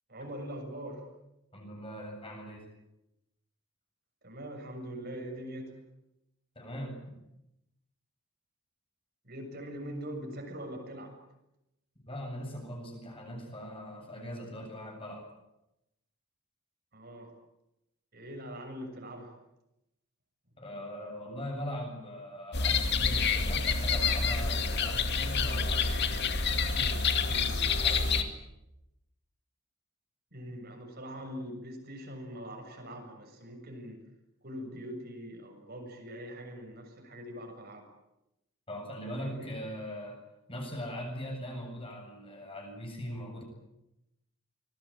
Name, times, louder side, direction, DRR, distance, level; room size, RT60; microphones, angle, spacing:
voice 1, 0.1-1.0 4.2-5.7 9.2-11.2 16.9-17.3 18.1-19.3 30.3-34.0 34.4-37.8 39.2-39.5, equal, 45° right, 3 dB, 7.0 m, -42 dB
voice 2, 1.5-2.6 6.5-7.2 12.1-15.2 20.6-28.3 38.7-40.2 40.5-43.4, equal, 25° left, 2 dB, 8.0 m, -41 dB
sound 1, 22.5-28.2, left 4 dB, 50° left, 2.4 m, -28 dB
26.0 x 21.0 x 9.0 m, 0.88 s
head